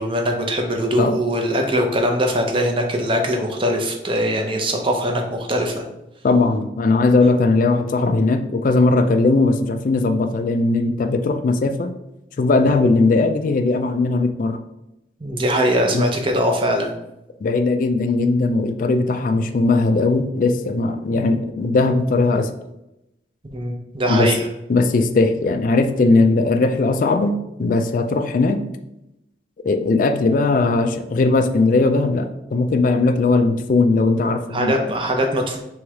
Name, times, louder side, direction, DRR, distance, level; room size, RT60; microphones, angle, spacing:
voice 1, 0.0-5.8 12.7-12.9 15.2-16.9 21.1-21.2 23.5-24.5 34.5-35.6, equal, 30° right, 3 dB, 0.6 m, -21 dB
voice 2, 6.2-11.9 12.4-14.6 15.9-16.0 17.4-22.5 24.1-24.3 24.7-28.6 29.6-34.7, left 3 dB, 45° left, 7 dB, 0.3 m, -18 dB
3.1 x 3.1 x 4.7 m, 0.89 s
head